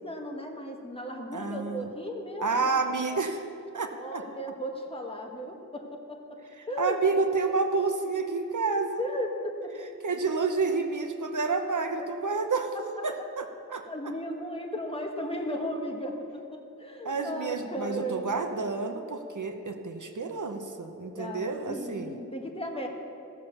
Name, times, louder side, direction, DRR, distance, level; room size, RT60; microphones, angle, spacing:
voice 1, 0.0-2.7 3.1-3.2 3.9-6.4 6.7-7.0 9.0-9.7 13.9-16.3 16.5-18.4 21.1-22.9, equal, 15° left, 1 dB, 1.6 m, -35 dB
voice 2, 1.3-1.9 2.4-3.4 3.7-4.2 6.8-9.0 10.0-12.7 13.0-13.9 17.0-22.1, right 4 dB, 70° right, 6 dB, 0.9 m, -29 dB
15.5 x 7.0 x 6.9 m, 2.7 s
wide cardioid pair, 65°, 32 cm